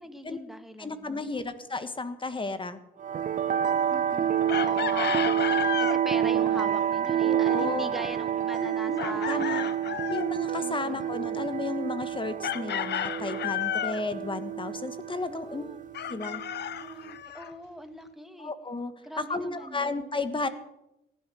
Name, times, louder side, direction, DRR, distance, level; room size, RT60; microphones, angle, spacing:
voice 1, 0.0-1.3 3.9-5.4 5.8-10.0 10.6-11.0 15.3-15.8 16.8-18.5 19.0-20.1, equal, ahead, 7 dB, 1.9 m, -42 dB
voice 2, 0.8-2.8 7.2-7.9 8.6-9.7 10.1-15.6 16.1-16.4 18.4-18.9 19.2-20.5, left 3 dB, 25° left, 11 dB, 1.5 m, -33 dB
sound 1, 3.0-17.1, right 9 dB, 40° right, 0.5 m, -29 dB
Chicken rooster, 4.5-6.0 9.0-10.3 12.4-14.0 15.9-17.5, left 10 dB, 60° left, 0.8 m, -32 dB
18.0 x 11.5 x 6.4 m, 0.88 s
cardioid pair, 90°, 20 cm